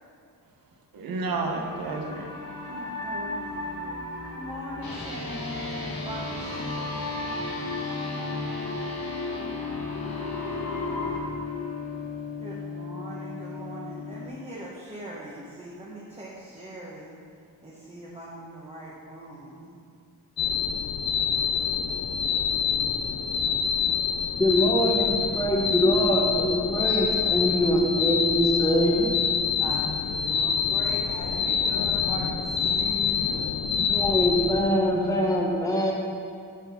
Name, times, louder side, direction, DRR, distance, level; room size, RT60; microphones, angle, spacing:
voice 1, 0.9-2.3 34.2-35.1, right 3 dB, 80° right, 3 dB, 1.0 m, -32 dB
sound 1, 1.3-11.2, left 2 dB, 70° left, 2.0 m, -35 dB
voice 2, 2.7-3.7 4.3-7.6 12.4-17.1 17.6-19.8 25.7-26.1 29.6-33.5, right 1 dB, 15° right, -6 dB, 1.1 m, -40 dB
sound 2, 4.8-14.3, left 4 dB, 85° left, 2.0 m, -36 dB
sound 3, 20.4-34.6, left 7 dB, 50° left, 0.5 m, -26 dB
voice 3, 24.4-29.1 33.9-35.9, equal, 10° left, -2 dB, 0.9 m, -23 dB
9.2 x 4.6 x 5.7 m, 2.3 s
wide cardioid pair, 140°, 35 cm